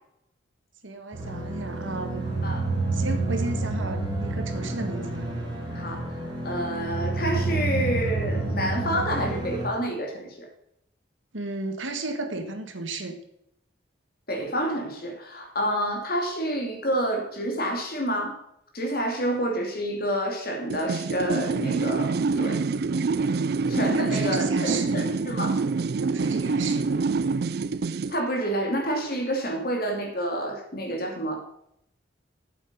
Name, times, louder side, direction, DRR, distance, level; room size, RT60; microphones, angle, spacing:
voice 1, 0.8-2.3 2.9-5.3 11.3-13.2 23.9-25.1 26.0-26.9, right 3 dB, 80° right, 6 dB, 1.7 m, -34 dB
sound 1, 1.1-9.7, right 2 dB, 20° right, 3.7 m, -29 dB
voice 2, 5.7-10.5 14.3-18.4 18.7-22.6 23.7-25.6 28.1-31.4, equal, 50° left, 2 dB, 2.7 m, -28 dB
sound 2, 20.7-28.2, right 4 dB, 50° right, 0.4 m, -26 dB
8.4 x 8.2 x 5.4 m, 0.76 s
head